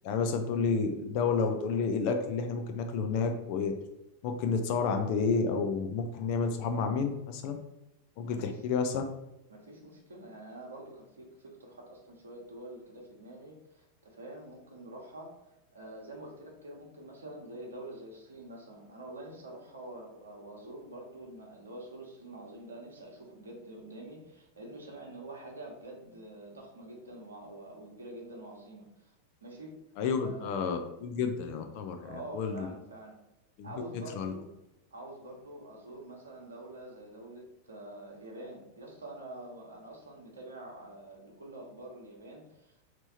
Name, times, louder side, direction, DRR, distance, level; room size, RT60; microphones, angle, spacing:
voice 1, 0.0-3.7 4.2-7.6 8.2-9.0 30.0-32.7 33.6-33.7 34.2-34.3, left 5 dB, 45° left, 5 dB, 0.5 m, -30 dB
voice 2, 8.3-8.6 9.5-29.1 29.4-29.8 30.2-30.5 32.0-33.2 33.6-34.5 34.9-42.9, right 1 dB, 70° right, -1 dB, 1.0 m, -46 dB
3.3 x 3.0 x 4.2 m, 0.90 s
figure-of-eight pair, 90°, 0 cm